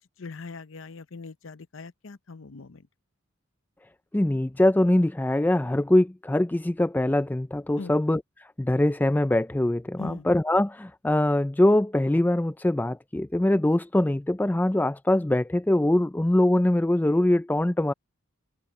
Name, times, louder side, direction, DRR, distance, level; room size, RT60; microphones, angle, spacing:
voice 1, 0.2-2.9 7.8-7.9 10.0-10.3, left 4 dB, 65° left, 0.7 m, -41 dB
voice 2, 4.1-8.2 8.6-17.9, left 1 dB, 10° left, 0.3 m, -23 dB
head